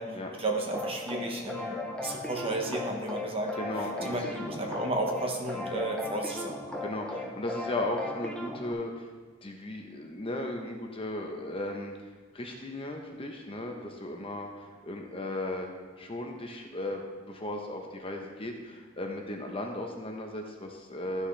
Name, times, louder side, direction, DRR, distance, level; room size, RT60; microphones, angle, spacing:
voice 1, 0.0-3.6 4.0-6.6, right 2 dB, 30° right, 1 dB, 1.1 m, -33 dB
sound 1, 0.7-8.7, left 2 dB, 5° left, 0.8 m, -37 dB
voice 2, 3.6-4.2 5.5-5.8 6.8-9.1 9.4-12.0 12.3-21.3, left 1 dB, 30° left, 2 dB, 0.9 m, -36 dB
13.5 x 6.3 x 3.3 m, 1.5 s
head